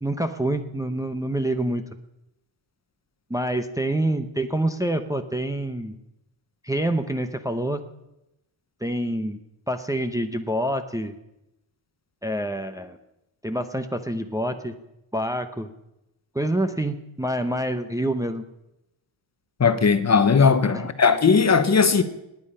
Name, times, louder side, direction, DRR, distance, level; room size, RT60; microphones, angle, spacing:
voice 1, 0.0-1.8 3.3-6.0 6.6-7.8 8.8-9.4 9.7-11.1 12.2-13.0 13.4-14.7 15.1-15.7 16.3-18.4 20.7-20.8, right 1 dB, 5° right, 0.7 m, -26 dB
voice 2, 19.6-22.0, left 5 dB, 35° left, 1.0 m, -18 dB
19.0 x 9.5 x 5.5 m
wide cardioid pair, 125°, 47 cm